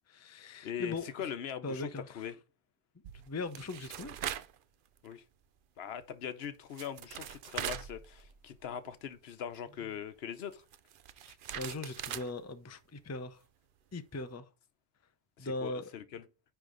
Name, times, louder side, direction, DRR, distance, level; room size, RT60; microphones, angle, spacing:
voice 1, 0.1-1.3 1.6-2.2 3.3-4.2 11.3-13.4 13.9-14.5 15.4-15.9, left 2 dB, 20° left, 0.5 m, -40 dB
voice 2, 0.6-2.3 5.0-5.2 5.8-10.6 15.4-16.2, left 8 dB, 75° left, 1.0 m, -41 dB
sound 1, 3.0-4.6 5.0-5.1 6.4-6.5 6.7-8.6 8.9-9.0 10.5-12.3, right 9 dB, 60° right, 0.7 m, -41 dB
9.8 x 3.4 x 3.8 m
omnidirectional pair, 1.1 m